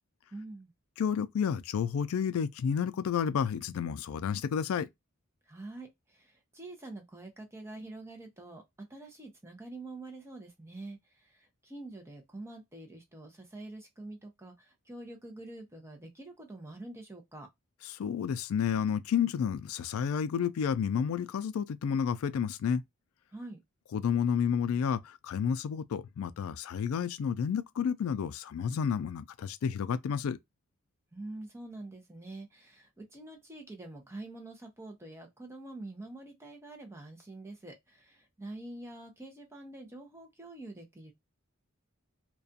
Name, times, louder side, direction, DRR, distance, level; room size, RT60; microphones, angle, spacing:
voice 1, 0.3-0.7 5.5-17.5 23.3-23.6 31.1-41.1, right 2 dB, 10° right, 0.6 m, -46 dB
voice 2, 1.0-4.9 17.9-22.8 23.9-30.4, left 7 dB, 75° left, 0.3 m, -30 dB
2.4 x 2.2 x 2.5 m
head